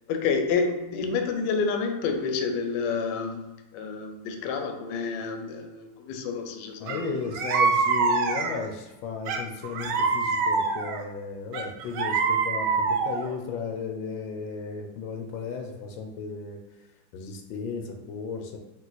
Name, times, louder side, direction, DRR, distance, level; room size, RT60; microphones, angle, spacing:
voice 1, 0.1-7.2, left 5 dB, 75° left, 5 dB, 1.2 m, -29 dB
voice 2, 6.8-16.6 17.1-18.6, left 5 dB, 90° left, 4 dB, 1.4 m, -35 dB
sound 1, 6.9-7.0 7.3-8.7 9.3-11.0 11.5-13.3, right 4 dB, 75° right, 1.1 m, -25 dB
3.9 x 2.5 x 4.0 m, 1.0 s
omnidirectional pair, 2.1 m